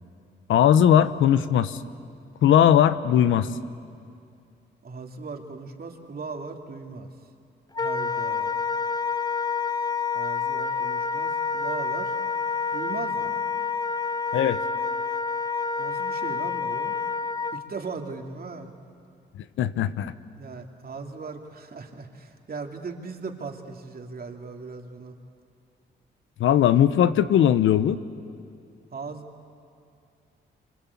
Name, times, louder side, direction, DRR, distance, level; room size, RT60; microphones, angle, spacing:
voice 1, 0.5-1.8 2.4-3.5 14.3-14.6 19.4-20.1 26.4-28.0, left 10 dB, 90° left, 13 dB, 0.9 m, -19 dB
voice 2, 4.8-7.1 7.8-8.6 10.1-12.2 12.7-13.3 15.8-17.0 17.5-18.7 20.4-25.2 28.9-29.3, right 4 dB, 50° right, 3 dB, 2.8 m, -38 dB
Wind instrument woodwind instrument, 7.7-17.6, left 5 dB, 20° left, 0.9 m, -28 dB
26.5 x 26.0 x 8.5 m, 2.4 s
cardioid pair, 75°, 20 cm